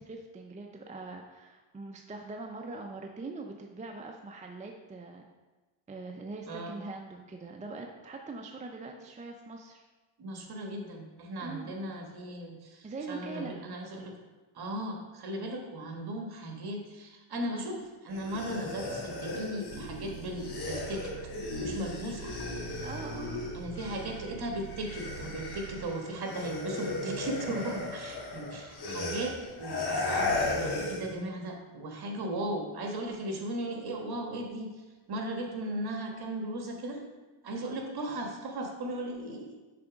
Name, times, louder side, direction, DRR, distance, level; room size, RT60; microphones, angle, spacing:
voice 1, 0.0-5.2 5.9-9.8 11.4-11.7 12.8-13.6 22.8-23.4 37.6-37.8, right 3 dB, 15° right, 2 dB, 0.5 m, -42 dB
voice 2, 6.5-6.8 10.2-14.1 14.5-21.1 21.6-22.5 23.5-37.0 37.4-39.6, right 1 dB, 50° right, 2 dB, 1.4 m, -37 dB
sound 1, 18.1-24.3 24.6-31.1, left 2 dB, 50° left, 1.6 m, -36 dB
Bus, 19.7-25.9, right 11 dB, 80° right, 0.6 m, -46 dB
6.7 x 3.5 x 5.0 m, 1.2 s
cardioid pair, 95°, 49 cm